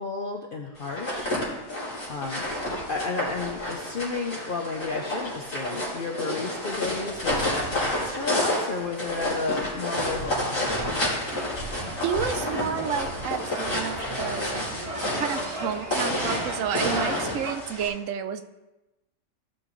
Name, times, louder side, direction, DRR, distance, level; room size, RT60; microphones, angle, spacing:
voice 1, 0.0-1.8 2.1-2.5 2.9-11.0, left 4 dB, 50° left, 1 dB, 0.9 m, -33 dB
sound 1, 0.8-17.9, left 1 dB, 75° left, 3.7 m, -30 dB
sound 2, 9.9-17.5, right 1 dB, 25° right, 1.3 m, -36 dB
voice 2, 12.0-14.6 15.2-18.4, right 8 dB, 75° right, 9 dB, 1.0 m, -30 dB
15.0 x 6.3 x 3.1 m, 1.0 s
omnidirectional pair, 1.4 m